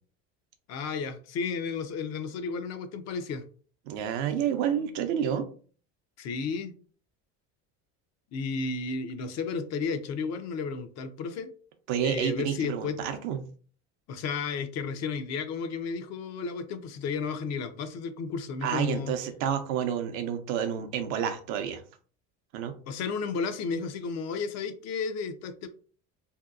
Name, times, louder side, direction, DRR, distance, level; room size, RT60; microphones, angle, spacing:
voice 1, 0.7-3.4 6.2-6.7 8.3-11.5 12.0-13.0 14.1-19.1 22.9-25.7, left 5 dB, 50° left, 8 dB, 0.5 m, -33 dB
voice 2, 3.9-5.5 11.9-13.4 18.6-21.8 22.5-22.7, right 8 dB, 75° right, 7 dB, 0.6 m, -29 dB
2.7 x 2.2 x 2.4 m, 0.42 s
supercardioid pair, 90°, 34 cm